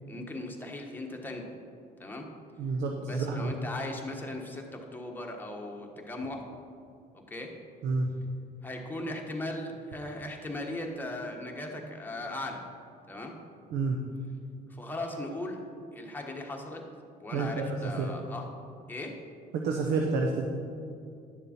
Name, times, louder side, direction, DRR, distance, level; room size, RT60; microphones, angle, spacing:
voice 1, 0.1-1.5 2.0-2.2 3.0-6.4 7.3-7.5 8.6-12.7 13.1-13.3 14.7-15.6 15.9-16.8 17.2-18.5 18.9-19.2, left 1 dB, 10° left, 1 dB, 1.3 m, -38 dB
voice 2, 2.6-3.5 7.8-8.1 13.7-14.0 17.3-18.1 19.5-20.4, right 4 dB, 85° right, 2 dB, 0.9 m, -29 dB
10.5 x 6.9 x 4.3 m, 2.4 s
cardioid pair, 110°, 17 cm